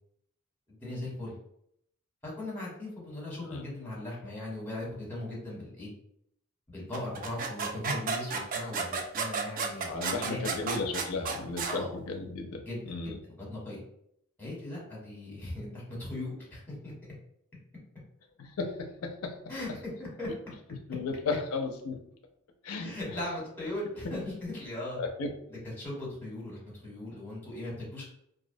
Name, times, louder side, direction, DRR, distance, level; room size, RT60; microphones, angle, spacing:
voice 1, 0.7-1.3 2.2-5.9 6.7-10.8 11.7-11.9 12.6-13.8 14.4-16.9 19.5-20.3 22.8-25.0 25.5-28.1, left 1 dB, 10° left, -5 dB, 1.0 m, -38 dB
sound 1, 6.9-11.8, right 5 dB, 40° right, 0.3 m, -32 dB
voice 2, 9.8-13.2 18.4-19.4 20.3-20.4 20.9-22.0 22.6-22.9 25.0-25.4, left 3 dB, 70° left, 3 dB, 0.4 m, -35 dB
2.4 x 2.0 x 2.6 m, 0.72 s
head